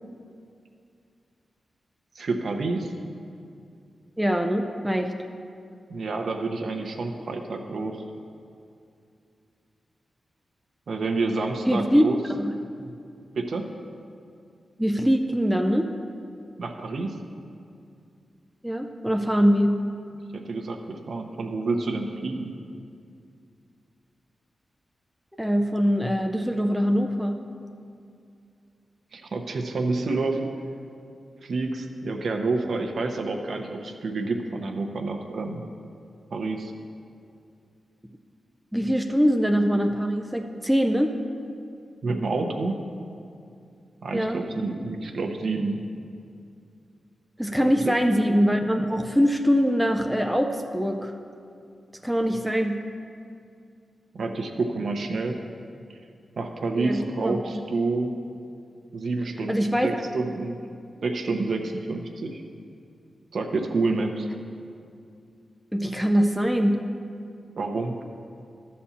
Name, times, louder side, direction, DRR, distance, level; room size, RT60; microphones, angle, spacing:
voice 1, 2.1-2.9 5.9-8.0 10.9-12.2 12.8-12.9 13.3-13.7 16.6-17.2 20.3-22.5 29.1-30.4 31.4-35.6 36.3-36.7 42.0-42.8 44.0-45.8 54.1-55.4 55.9-56.0 56.4-58.1 58.9-60.6 61.0-62.4 63.3-64.3 67.6-67.9, right 3 dB, 60° right, 3 dB, 0.8 m, -28 dB
voice 2, 4.2-5.1 11.7-12.0 12.4-12.5 14.8-15.9 18.6-19.8 25.4-27.4 38.7-41.1 44.1-44.4 47.4-51.1 52.0-52.8 56.7-57.6 59.5-60.1 65.7-66.8, equal, 5° right, 4 dB, 0.4 m, -23 dB
12.5 x 4.3 x 7.2 m, 2.5 s
wide cardioid pair, 145°, 0 cm